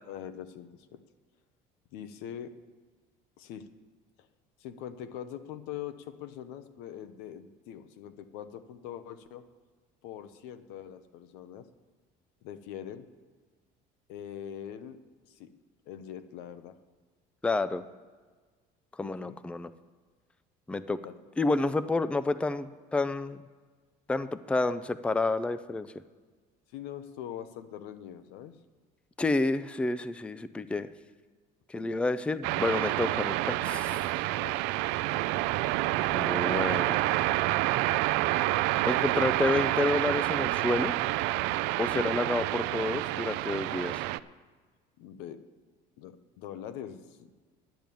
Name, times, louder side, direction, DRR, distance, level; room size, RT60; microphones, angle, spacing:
voice 1, 0.1-1.0 1.9-2.6 3.4-3.7 4.6-9.4 10.0-11.7 12.4-13.1 14.1-15.0 15.3-15.5 15.9-16.8 19.0-19.4 21.0-21.1 26.7-28.6 31.8-31.9 34.4-34.6 45.0-45.4 46.0-47.3, left 10 dB, 85° left, 11 dB, 0.9 m, -43 dB
voice 2, 17.4-17.8 19.0-19.7 20.7-21.0 21.4-23.4 24.1-25.9 29.2-30.9 31.7-34.0 36.1-37.0 38.9-40.9 41.8-44.0, left 2 dB, 5° left, 14 dB, 0.4 m, -29 dB
sound 1, 32.4-44.2, right 17 dB, 85° right, 0.4 m, -28 dB
10.5 x 7.0 x 9.2 m, 1.4 s
cardioid pair, 125°, 17 cm